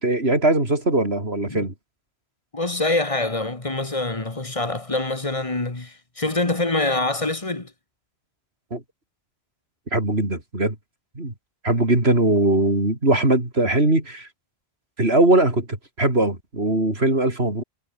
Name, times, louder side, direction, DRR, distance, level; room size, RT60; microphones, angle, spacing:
voice 1, 0.0-1.7 8.7-8.8 9.9-10.8 11.2-11.3 11.6-14.3 15.0-15.7 16.0-17.6, right 2 dB, 90° right, 5.4 m, -20 dB
voice 2, 2.5-7.7, left 2 dB, 35° left, 1.9 m, -25 dB
omnidirectional pair, 1.0 m